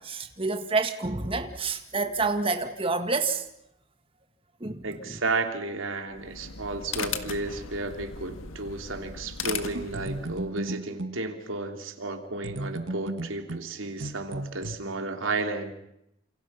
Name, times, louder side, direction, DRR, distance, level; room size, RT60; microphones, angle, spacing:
voice 1, 0.0-3.4 4.6-4.8, right 3 dB, 25° right, 1.9 m, -28 dB
voice 2, 4.8-15.7, right 3 dB, 85° right, 3.2 m, -33 dB
sound 1, 6.1-10.6, left 6 dB, 90° left, 1.8 m, -37 dB
sound 2, 9.7-11.2 12.4-14.7, right 1 dB, 70° right, 1.5 m, -35 dB
29.5 x 27.5 x 5.8 m
head